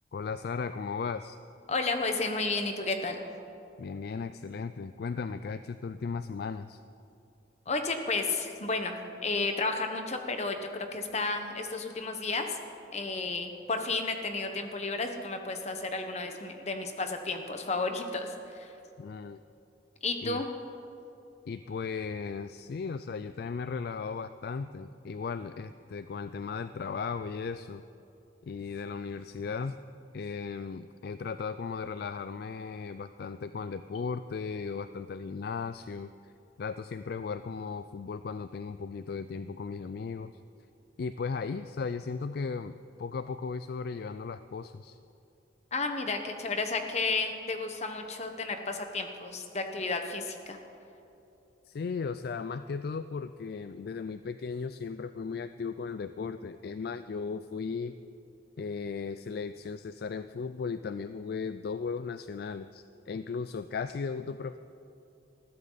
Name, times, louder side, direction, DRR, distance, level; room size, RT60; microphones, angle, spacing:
voice 1, 0.1-1.4 3.8-6.8 19.0-19.4 20.2-20.4 21.5-27.8 28.4-29.8 30.1-36.3 36.6-40.3 41.0-45.0 51.6-58.0 58.6-64.6, left 5 dB, 55° left, 11 dB, 0.3 m, -36 dB
voice 2, 1.7-3.2 7.7-12.6 12.9-18.7 20.0-20.5 45.7-50.6, left 3 dB, 40° left, 5 dB, 1.2 m, -32 dB
20.0 x 14.5 x 4.0 m, 2.9 s
head